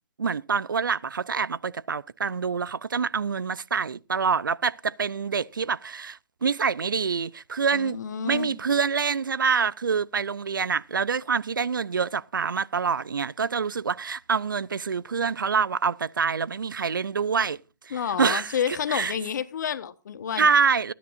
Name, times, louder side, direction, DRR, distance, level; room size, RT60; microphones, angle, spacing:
voice 1, 0.2-8.0 8.2-17.6 17.8-19.1 20.4-20.9, right 6 dB, 85° right, 0.6 m, -26 dB
voice 2, 7.7-8.6 17.9-20.5, left 8 dB, 60° left, 1.3 m, -30 dB
26.0 x 10.0 x 2.6 m
hypercardioid pair, 140°, 11 cm